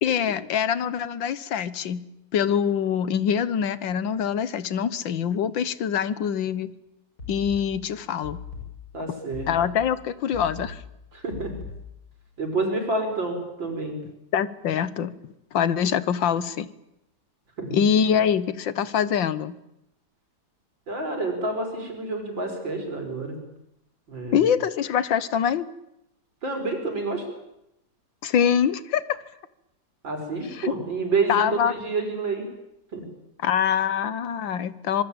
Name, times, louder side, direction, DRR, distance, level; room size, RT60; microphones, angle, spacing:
voice 1, 0.0-2.0 2.3-6.7 7.3-8.4 9.5-10.8 14.3-15.1 15.5-16.7 17.7-19.6 24.3-25.7 28.2-29.2 30.5-30.7 31.3-31.7 33.4-35.0, left 8 dB, 85° left, 15 dB, 1.9 m, -24 dB
sound 1, 7.2-12.2, left 5 dB, 55° left, 6.9 m, -40 dB
voice 2, 8.9-9.5 11.1-11.5 12.4-13.9 17.6-17.8 20.9-23.4 24.1-24.5 26.4-27.2 30.0-32.4 32.9-33.0, right 3 dB, 85° right, 4 dB, 6.4 m, -28 dB
25.5 x 22.0 x 8.9 m, 0.84 s
omnidirectional pair, 2.0 m